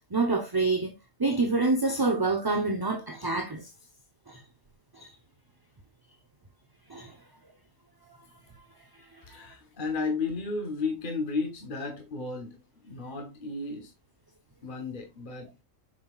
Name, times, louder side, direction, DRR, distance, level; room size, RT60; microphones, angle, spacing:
voice 1, 0.1-0.9 1.2-3.6 4.3-4.4 5.0-5.1 6.9-7.1, right 3 dB, 20° right, 0.7 m, -27 dB
voice 2, 9.3-13.9 14.6-15.6, left 4 dB, 40° left, 1.3 m, -33 dB
7.4 x 5.7 x 2.4 m
omnidirectional pair, 1.4 m